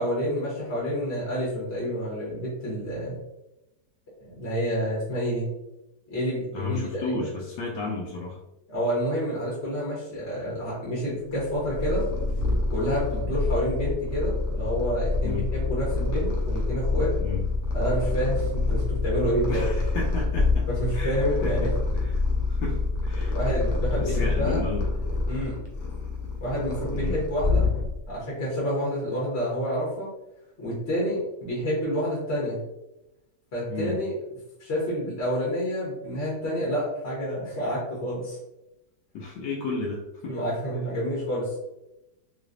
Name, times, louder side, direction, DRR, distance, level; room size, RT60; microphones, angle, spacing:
voice 1, 0.0-3.2 4.2-5.5 6.1-7.3 8.7-12.0 12.7-17.1 17.7-19.6 20.7-21.7 23.3-24.6 25.3-25.6 26.4-27.7 28.1-30.1 30.6-32.6 33.5-34.1 34.6-38.4 40.3-41.6, equal, 40° left, -7 dB, 1.3 m, -28 dB
voice 2, 6.5-8.4 15.2-15.5 17.2-17.4 19.5-20.7 20.9-21.7 22.0-22.2 22.5-23.4 24.0-24.9 26.9-27.2 33.7-34.0 39.1-40.3, left 3 dB, 90° left, -4 dB, 1.2 m, -32 dB
Purr, 11.3-28.2, left 3 dB, 60° left, 1.0 m, -27 dB
3.1 x 3.1 x 2.5 m, 0.93 s
omnidirectional pair, 1.8 m